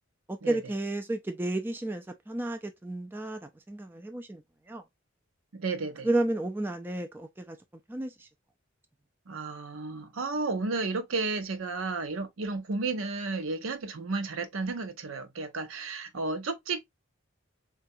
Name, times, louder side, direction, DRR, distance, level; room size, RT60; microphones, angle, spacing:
voice 1, 0.3-4.4 4.7-4.8 6.0-7.6 7.9-8.3, right 2 dB, 10° right, 0.3 m, -32 dB
voice 2, 5.5-6.1 9.3-16.9, right 3 dB, 80° right, 0.6 m, -33 dB
3.9 x 2.3 x 2.6 m
head